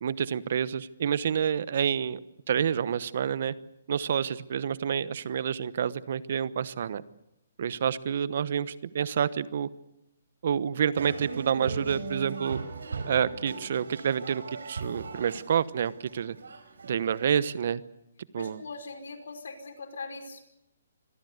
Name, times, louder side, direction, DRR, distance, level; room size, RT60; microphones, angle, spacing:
voice 1, 0.0-2.2 2.5-3.5 3.9-7.0 7.6-9.7 10.4-12.6 13.1-14.4 14.7-16.4 16.8-17.8 18.3-18.6, right 8 dB, 55° right, 17 dB, 1.0 m, -28 dB
sound 1, 11.0-17.3, right 4 dB, 85° right, 4.8 m, -39 dB
voice 2, 18.4-20.4, left 3 dB, 75° left, 6 dB, 5.0 m, -41 dB
25.0 x 18.0 x 8.1 m, 0.86 s
hypercardioid pair, 155°, 0 cm